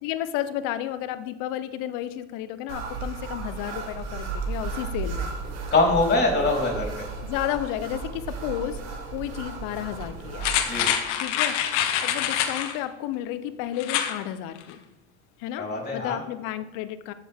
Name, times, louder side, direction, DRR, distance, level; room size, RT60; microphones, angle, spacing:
voice 1, 0.0-5.3 7.2-8.8 9.1-10.5 11.2-14.8 15.4-17.1, left 12 dB, 70° left, 13 dB, 0.8 m, -32 dB
sound 1, 2.7-10.9, right 4 dB, 85° right, 1.9 m, -34 dB
voice 2, 5.7-7.1 10.6-10.9 15.6-16.2, left 2 dB, 30° left, 0 dB, 3.9 m, -23 dB
sound 2, 10.4-12.8 13.8-14.2 14.6-14.7, left 10 dB, 85° left, 1.2 m, -25 dB
14.5 x 6.8 x 3.6 m, 1.1 s
supercardioid pair, 90°, 35 cm